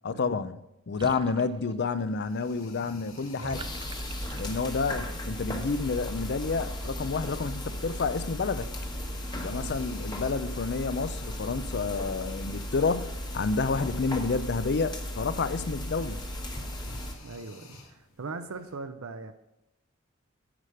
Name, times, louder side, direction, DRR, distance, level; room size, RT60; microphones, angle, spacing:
voice 1, 0.0-0.6 0.9-3.6 4.4-8.7 9.3-16.2, left 4 dB, 50° left, 0.5 m, -29 dB
Water / Bathtub (filling or washing), 0.9-5.0, right 4 dB, 20° right, 0.3 m, -47 dB
sound 1, 1.8-18.8, left 2 dB, 80° left, 2.6 m, -54 dB
voice 2, 3.4-3.8 9.4-9.8 17.2-19.3, right 3 dB, 70° right, 0.6 m, -40 dB
sound 2, 3.5-17.1, equal, 20° left, 1.2 m, -36 dB
9.8 x 4.9 x 6.6 m
head